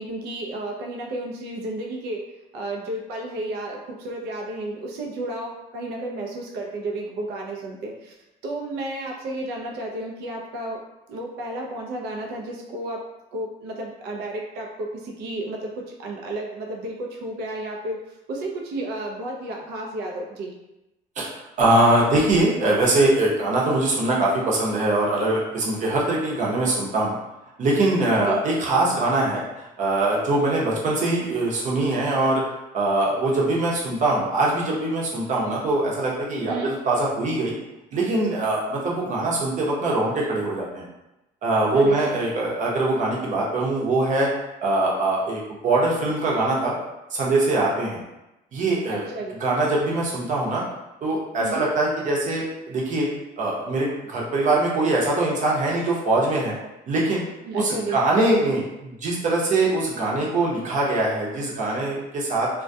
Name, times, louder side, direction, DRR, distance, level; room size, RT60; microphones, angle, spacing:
voice 1, 0.0-2.3 2.5-8.1 8.4-10.8 11.1-13.0 13.3-20.5 23.3-23.6 28.1-28.4 36.5-36.7 41.7-42.1 48.9-49.3 51.4-51.6 57.5-58.0, right 2 dB, 80° right, 0 dB, 0.5 m, -32 dB
voice 2, 21.6-27.1 27.6-32.4 32.7-37.5 37.9-40.9 41.4-44.3 44.6-46.7 47.1-48.0 48.5-49.1 49.4-50.6 51.0-53.1 53.4-56.6 56.9-57.2 57.5-62.5, right 2 dB, 50° right, -4 dB, 0.7 m, -22 dB
2.2 x 2.1 x 2.6 m, 0.96 s
cardioid pair, 110°, 17 cm